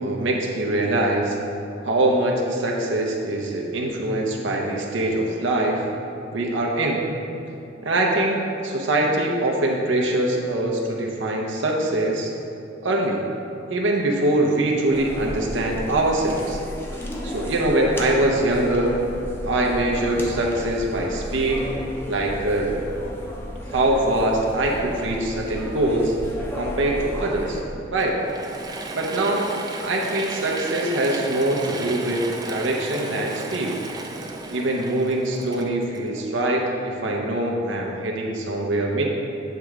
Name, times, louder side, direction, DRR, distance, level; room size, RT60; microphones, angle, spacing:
voice 1, 0.0-1.4 1.8-5.8 6.3-7.1 7.8-12.3 12.8-13.2 13.7-16.6 17.2-19.0 19.5-21.7 22.1-22.7 23.7-26.1 26.5-27.6 27.9-28.2 28.9-29.5 29.8-33.8 34.5-39.0, right 1 dB, 85° right, -1 dB, 0.8 m, -23 dB
sound 1, 14.9-27.6, equal, 10° left, 0.7 m, -33 dB
Mechanisms / Drill, 28.0-36.6, right 3 dB, 20° right, 0.4 m, -35 dB
8.3 x 3.7 x 4.7 m, 2.6 s
head